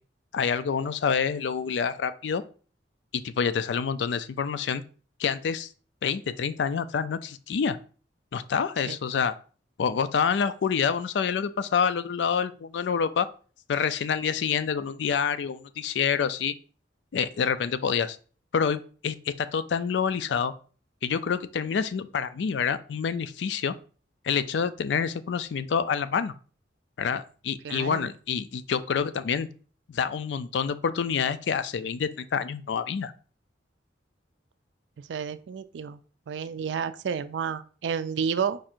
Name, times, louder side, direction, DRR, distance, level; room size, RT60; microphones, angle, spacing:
voice 1, 0.3-2.4 3.1-4.8 5.2-5.7 6.0-7.8 8.3-9.4 9.8-13.3 13.7-16.5 17.1-18.2 18.5-20.5 21.0-23.7 24.2-26.3 27.0-29.5 29.9-33.1, left 6 dB, 70° left, 13 dB, 0.4 m, -27 dB
voice 2, 27.6-28.1 35.0-36.0 36.3-38.6, right 6 dB, 75° right, 13 dB, 0.4 m, -31 dB
4.7 x 2.5 x 4.4 m, 0.40 s
head